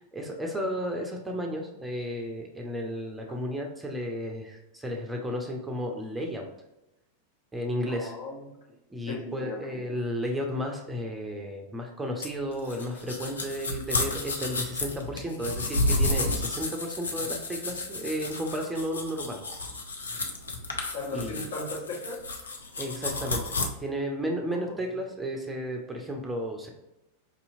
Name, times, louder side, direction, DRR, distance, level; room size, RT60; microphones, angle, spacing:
voice 1, 0.1-6.5 7.5-8.1 8.9-19.4 21.1-21.4 22.8-26.7, equal, 10° right, 1 dB, 0.6 m, -33 dB
voice 2, 7.9-8.6 9.1-9.8 20.9-22.2 24.5-24.9, left 2 dB, 55° left, -2 dB, 1.1 m, -37 dB
sound 1, 12.2-23.7, left 2 dB, 75° left, 0.5 m, -31 dB
4.8 x 2.7 x 2.6 m, 0.93 s
figure-of-eight pair, 90°, 0 cm